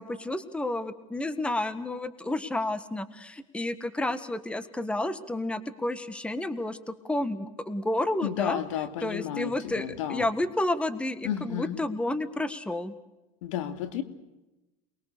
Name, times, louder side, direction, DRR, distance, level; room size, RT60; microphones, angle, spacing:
voice 1, 0.0-8.6 9.0-12.9, left 1 dB, 5° left, 12 dB, 1.6 m, -31 dB
voice 2, 8.2-10.3 11.2-11.8 13.4-14.0, left 10 dB, 80° left, 9 dB, 2.6 m, -32 dB
28.5 x 21.5 x 6.8 m, 1.0 s
supercardioid pair, 115°, 16 cm